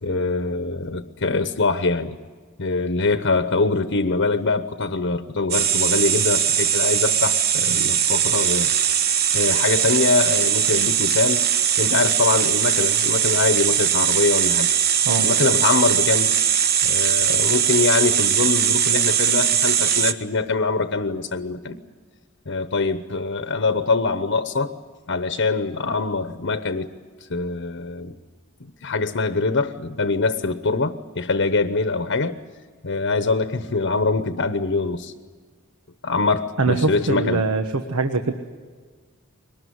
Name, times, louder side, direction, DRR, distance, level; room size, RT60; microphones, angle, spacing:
voice 1, 0.0-2.2 2.6-8.7 9.3-11.5 11.8-14.7 15.2-16.3 16.8-21.8 22.5-24.7 25.1-26.9 27.3-28.1 28.6-32.4 32.8-35.1 36.0-37.4, left 3 dB, 60° left, 10 dB, 1.0 m, -23 dB
sound 1, 5.5-20.1, right 9 dB, 45° right, 1.0 m, -20 dB
voice 2, 36.6-38.3, right 3 dB, 90° right, 6 dB, 1.3 m, -22 dB
23.0 x 20.0 x 9.5 m, 1.5 s
head